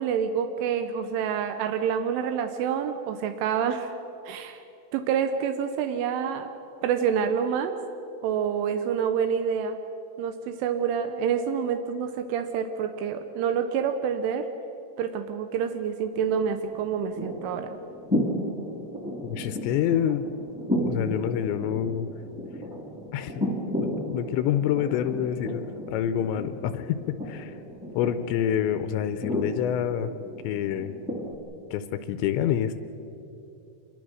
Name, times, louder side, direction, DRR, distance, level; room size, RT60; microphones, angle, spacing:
voice 1, 0.0-3.9 4.3-4.6 4.9-6.5 6.8-7.8 8.2-9.8 10.2-14.5 15.0-17.8, right 7 dB, 85° right, 7 dB, 3.3 m, -27 dB
sound 1, 16.1-31.4, equal, ahead, 1.9 m, -34 dB
voice 2, 19.2-20.3 20.8-22.1 23.1-23.5 23.8-27.0 27.3-27.5 28.0-30.1 30.4-30.9 31.7-32.7, left 10 dB, 80° left, 10 dB, 2.8 m, -27 dB
26.5 x 21.0 x 6.3 m, 3.0 s
omnidirectional pair, 5.5 m